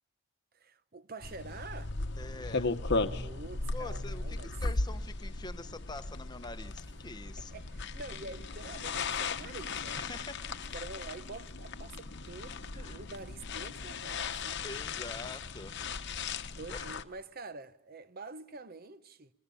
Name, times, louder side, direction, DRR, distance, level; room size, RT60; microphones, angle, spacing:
voice 1, 0.5-2.0 3.2-4.6 7.5-10.0 10.7-14.6 16.4-19.3, right 3 dB, 45° right, 0.8 m, -47 dB
sound 1, 1.2-17.0, left 3 dB, 55° left, 1.0 m, -37 dB
voice 2, 2.2-2.7 3.7-7.6 9.9-10.4 12.7-13.0 14.6-15.8 16.7-16.9, left 3 dB, 20° left, 0.9 m, -45 dB
29.0 x 20.5 x 7.0 m
head